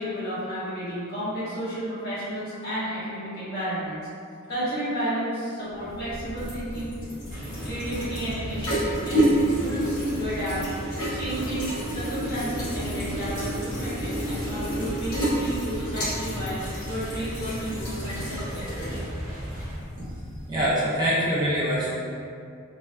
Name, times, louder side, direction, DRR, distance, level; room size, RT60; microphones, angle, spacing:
voice 1, 0.0-4.1 4.5-6.9 7.6-10.6 10.9-16.6 16.9-19.2, equal, 50° left, -12 dB, 1.2 m, -32 dB
sound 1, 5.7-20.8, right 1 dB, 85° left, 0.9 m, -30 dB
sound 2, 7.3-19.8, equal, 40° right, 0.8 m, -37 dB
voice 2, 20.5-21.9, equal, 20° right, -9 dB, 0.4 m, -24 dB
3.2 x 2.2 x 2.2 m, 2.4 s
head